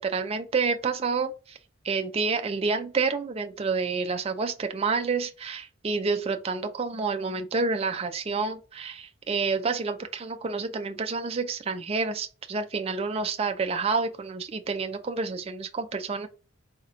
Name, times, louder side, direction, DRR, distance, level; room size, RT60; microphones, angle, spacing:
voice 1, 0.0-1.6 1.8-16.3, right 4 dB, 30° right, 0.3 m, -29 dB
4.1 x 2.8 x 3.6 m
head